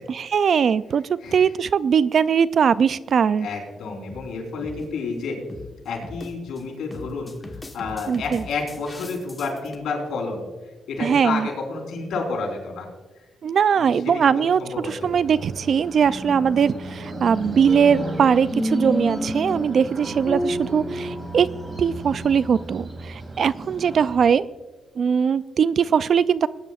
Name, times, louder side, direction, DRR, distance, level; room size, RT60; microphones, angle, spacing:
voice 1, 0.1-3.5 8.1-8.4 11.0-11.5 13.4-21.5 21.8-24.5 25.0-26.5, right 7 dB, 60° right, 17 dB, 0.3 m, -20 dB
voice 2, 1.2-1.5 3.4-5.4 5.8-12.9 13.8-14.9, left 4 dB, 80° left, -1 dB, 3.8 m, -30 dB
sound 1, 3.1-3.4 4.1-4.3 4.6-4.9 5.5-5.7 6.0-6.6 6.9-9.8, left 2 dB, 20° left, 1.2 m, -40 dB
sound 2, 15.0-24.3, right 1 dB, 40° right, 2.3 m, -35 dB
sound 3, 17.7-22.6, equal, 5° left, 0.5 m, -30 dB
19.5 x 10.5 x 2.4 m, 1.2 s
cardioid pair, 95°, 0 cm